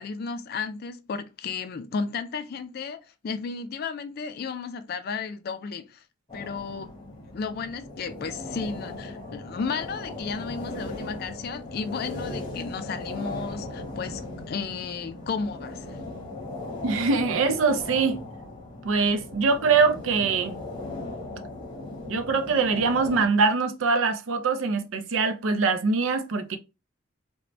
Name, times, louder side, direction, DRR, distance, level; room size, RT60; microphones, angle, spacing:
voice 1, 0.0-3.0 3.2-6.0 6.3-6.9 7.3-14.2 14.5-16.0, left 5 dB, 50° left, 0.3 m, -33 dB
sound 1, 6.3-23.3, left 2 dB, 25° left, 0.8 m, -38 dB
voice 2, 16.8-18.2 18.8-20.6 22.1-26.6, right 4 dB, 75° right, 0.4 m, -23 dB
3.0 x 2.1 x 2.5 m
head